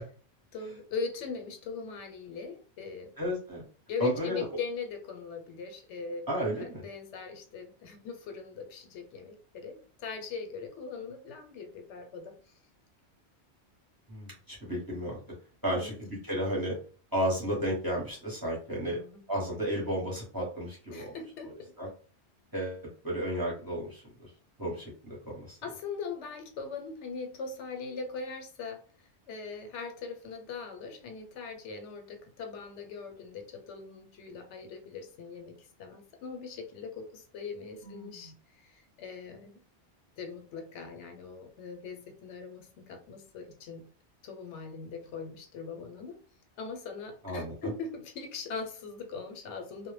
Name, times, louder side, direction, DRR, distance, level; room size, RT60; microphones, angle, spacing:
voice 1, 0.5-3.1 3.9-6.3 6.6-12.4 15.7-16.0 18.9-19.2 20.9-21.7 25.6-28.8 29.3-39.6 40.2-43.8 44.2-46.2 46.6-49.9, left 5 dB, 85° left, 6 dB, 0.9 m, -40 dB
voice 2, 3.2-3.6 4.0-4.4 6.3-6.8 14.1-15.2 15.6-16.7 17.1-19.0 19.3-21.1 21.8-21.9 22.5-24.3 24.6-25.6 37.8-38.3 47.2-47.5, equal, 20° right, -3 dB, 0.8 m, -33 dB
2.1 x 2.0 x 3.1 m, 0.39 s
omnidirectional pair, 1.2 m